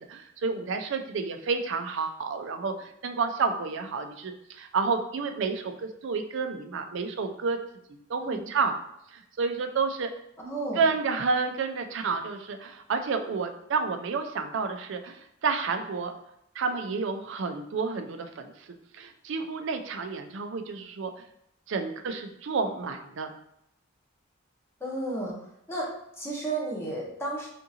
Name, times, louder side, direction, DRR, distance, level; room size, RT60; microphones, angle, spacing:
voice 1, 0.1-7.6 8.1-8.7 9.1-10.1 10.8-16.1 16.6-18.5 18.9-21.1 21.7-23.3, right 4 dB, 60° right, 6 dB, 0.4 m, -30 dB
voice 2, 10.4-10.8 24.8-25.3 25.7-25.8 26.2-27.5, right 2 dB, 10° left, -5 dB, 0.9 m, -32 dB
3.6 x 2.5 x 2.8 m, 0.77 s
head